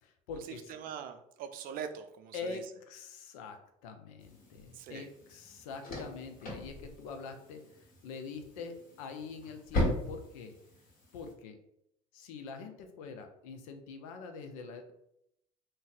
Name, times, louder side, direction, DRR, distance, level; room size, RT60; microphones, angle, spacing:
voice 1, 0.0-0.7 2.3-7.6 8.0-10.6 11.1-11.6 12.1-14.9, left 4 dB, 80° left, 6 dB, 0.5 m, -44 dB
voice 2, 0.7-2.6 4.7-5.1, right 7 dB, 55° right, 8 dB, 0.4 m, -42 dB
sound 1, 4.2-11.3, left 1 dB, 55° left, 1.4 m, -39 dB
2.6 x 2.1 x 3.9 m, 0.78 s
hypercardioid pair, 75°, 18 cm